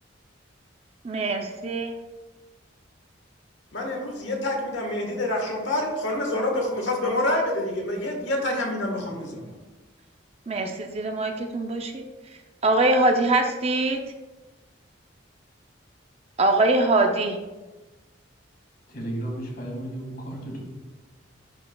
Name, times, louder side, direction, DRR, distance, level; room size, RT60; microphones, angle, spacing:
voice 1, 1.0-1.9 10.5-12.0 12.6-14.0 16.4-17.4, right 2 dB, 30° right, 4 dB, 0.5 m, -23 dB
voice 2, 3.7-9.5, left 1 dB, 65° left, 1 dB, 1.4 m, -27 dB
voice 3, 18.9-20.6, right 1 dB, 50° left, 0 dB, 1.7 m, -33 dB
10.5 x 4.6 x 2.3 m, 1.2 s
head